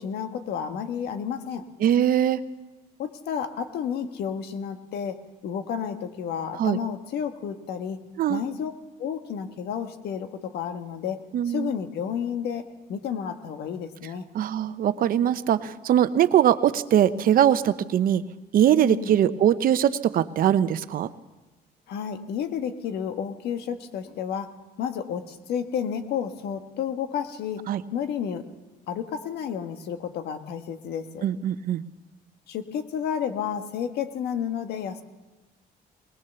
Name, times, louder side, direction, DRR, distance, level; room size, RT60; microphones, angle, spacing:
voice 1, 0.0-1.6 3.0-8.0 8.3-8.7 9.0-14.3 18.8-19.1 21.9-24.5 24.8-27.6 27.9-28.4 28.9-31.2 32.5-35.0, left 8 dB, 75° left, 8 dB, 1.5 m, -31 dB
voice 2, 1.8-2.4 6.6-6.8 8.2-8.4 11.3-11.7 14.3-18.2 18.5-21.1 27.7-27.8 31.2-31.8, right 10 dB, 60° right, 14 dB, 0.8 m, -21 dB
20.5 x 18.5 x 7.0 m, 1.1 s
cardioid pair, 110°, 17 cm